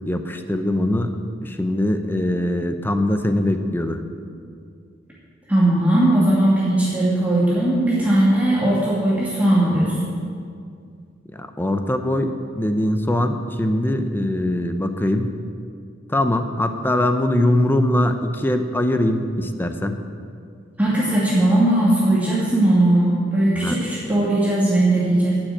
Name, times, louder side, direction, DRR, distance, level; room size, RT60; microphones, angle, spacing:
voice 1, 0.1-4.0 11.3-15.3 16.1-20.0 23.6-23.8, left 1 dB, 10° left, 7 dB, 0.7 m, -22 dB
voice 2, 5.5-9.9 20.8-25.4, right 1 dB, 10° right, -8 dB, 2.4 m, -18 dB
11.0 x 7.8 x 8.8 m, 2.3 s
head